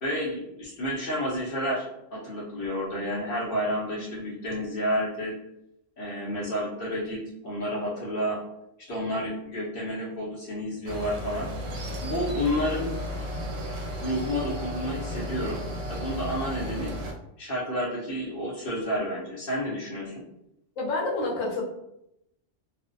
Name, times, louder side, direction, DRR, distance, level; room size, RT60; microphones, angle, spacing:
voice 1, 0.0-5.4 6.0-8.4 8.8-11.5 12.0-12.9 14.0-16.9 17.4-20.2, equal, 55° left, -5 dB, 0.8 m, -30 dB
sound 1, 10.9-17.1, equal, 90° right, 0.9 m, -34 dB
voice 2, 20.8-21.6, left 2 dB, 85° left, -2 dB, 1.0 m, -28 dB
2.4 x 2.0 x 2.5 m, 0.83 s
omnidirectional pair, 1.3 m